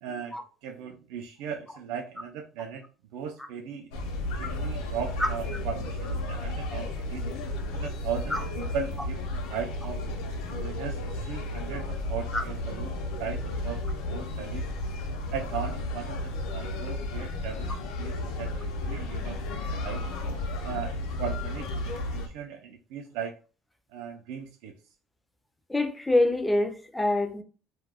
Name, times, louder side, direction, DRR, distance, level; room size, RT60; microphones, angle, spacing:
voice 1, 0.0-0.4 0.6-2.9 3.1-3.9 4.4-7.3 7.7-10.0 10.5-11.0 11.3-13.8 14.1-14.7 15.3-17.7 18.0-19.4 19.8-20.0 20.6-23.3 23.9-24.7, right 7 dB, 85° right, 0.3 m, -37 dB
sound 1, 3.9-22.3, left 1 dB, 85° left, 0.5 m, -33 dB
voice 2, 25.7-27.4, left 2 dB, 5° left, 0.3 m, -25 dB
2.2 x 2.1 x 3.3 m
cardioid pair, 165°, 0 cm